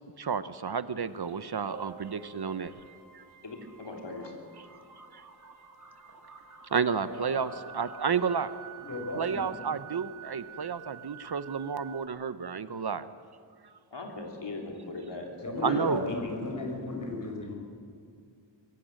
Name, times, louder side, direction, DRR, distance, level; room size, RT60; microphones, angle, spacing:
voice 1, 0.2-2.7 6.7-8.5 9.2-13.0 15.6-16.0, right 6 dB, 60° right, 13 dB, 0.8 m, -31 dB
sound 1, 1.1-12.1, right 5 dB, 45° right, 2.4 m, -48 dB
voice 2, 3.4-4.3 13.9-15.3 15.6-17.1, left 2 dB, 70° left, 1 dB, 3.3 m, -39 dB
voice 3, 8.8-9.5 15.4-17.6, left 2 dB, 45° left, 1 dB, 5.0 m, -35 dB
22.0 x 15.5 x 7.6 m, 2.3 s
wide cardioid pair, 80°, 44 cm